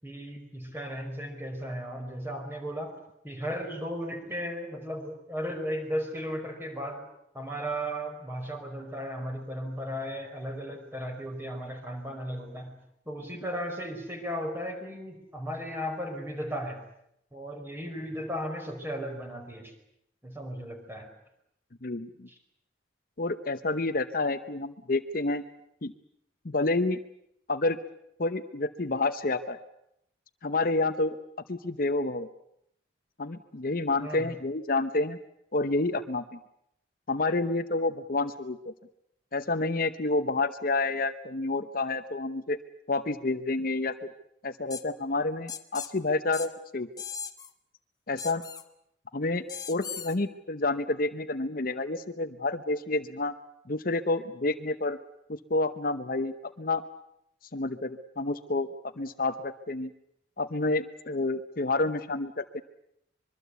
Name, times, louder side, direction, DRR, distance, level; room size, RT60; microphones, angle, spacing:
voice 1, 0.0-2.9 3.2-7.0 7.3-12.7 13.0-16.8 17.3-19.7 20.2-21.1 22.3-22.4 34.0-34.3, equal, 10° right, 4 dB, 4.8 m, -35 dB
voice 2, 21.8-22.3 23.2-25.4 25.8-25.9 26.4-27.0 27.5-27.8 28.2-29.6 30.4-31.2 31.5-32.3 33.2-35.2 35.5-36.4 37.1-38.7 39.3-42.6 42.9-44.1 44.4-46.9 48.1-48.4 49.1-53.3 53.7-55.0 55.3-56.8 57.5-58.7 59.0-59.9 60.4-62.6, left 2 dB, 50° left, 10 dB, 0.9 m, -29 dB
sound 1, 44.7-44.8 45.5-45.9 46.3-46.5 47.0-47.5 48.2-48.6 49.5-50.2, left 7 dB, 20° left, 1.3 m, -38 dB
25.0 x 23.0 x 8.2 m, 0.76 s
head